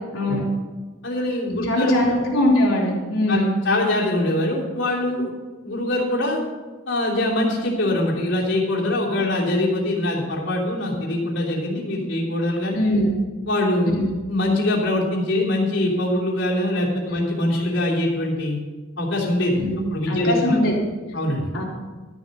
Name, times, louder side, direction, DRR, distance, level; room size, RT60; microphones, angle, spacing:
voice 1, 0.1-0.4 1.6-3.6 12.7-13.1 14.0-14.1 19.6-20.7 21.5-21.6, left 1 dB, 90° left, -3 dB, 3.7 m, -21 dB
voice 2, 1.0-2.1 3.3-5.3 5.6-6.4 6.9-12.8 13.4-14.0 14.3-18.6 19.0-19.6 19.9-20.6 21.1-21.5, left 1 dB, 65° left, -4 dB, 3.3 m, -23 dB
13.0 x 7.3 x 6.8 m, 1.3 s
head